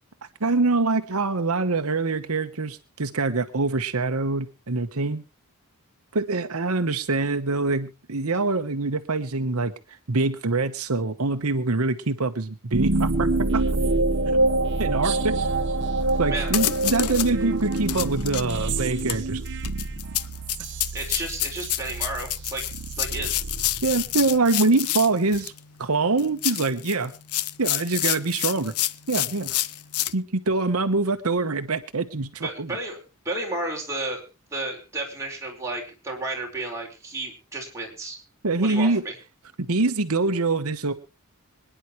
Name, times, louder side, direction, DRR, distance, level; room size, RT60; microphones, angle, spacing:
voice 1, 0.4-5.2 6.1-9.7 10.1-13.3 13.5-13.6 14.8-15.3 16.2-19.4 23.8-25.5 25.8-27.1 27.6-28.7 29.1-29.6 30.1-32.7 38.4-39.0 39.6-40.9, right 3 dB, 75° right, 8 dB, 1.1 m, -24 dB
sound 1, 12.7-24.3, right 2 dB, 55° right, 1.2 m, -26 dB
sound 2, 16.1-16.2 16.5-17.3 17.7-25.6 26.2-30.1, left 14 dB, 85° left, 0.8 m, -28 dB
voice 2, 20.9-22.6 23.0-23.3 32.4-33.0 33.2-34.2 34.5-38.2 38.6-39.1, right 2 dB, 15° right, -1 dB, 4.8 m, -32 dB
25.5 x 10.0 x 3.1 m, 0.31 s
head